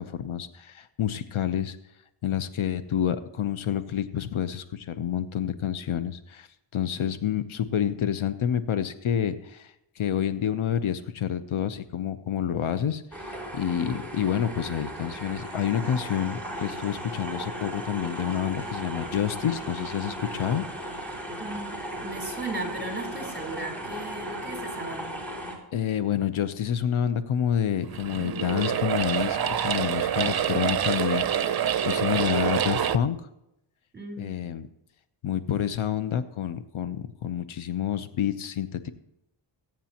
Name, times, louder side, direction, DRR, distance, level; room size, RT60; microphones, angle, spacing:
voice 1, 0.0-1.8 2.2-6.5 6.7-20.7 25.7-33.2 34.2-34.7 35.2-38.9, left 9 dB, 80° left, 11 dB, 0.9 m, -28 dB
sound 1, 13.1-25.5, right 1 dB, 5° left, 4.0 m, -36 dB
voice 2, 21.4-21.8 22.0-25.1 33.9-34.3, right 2 dB, 20° right, 1 dB, 4.2 m, -36 dB
sound 2, 27.8-33.0, right 9 dB, 50° right, 0.7 m, -26 dB
22.0 x 9.0 x 3.0 m, 0.86 s
cardioid pair, 85°, 48 cm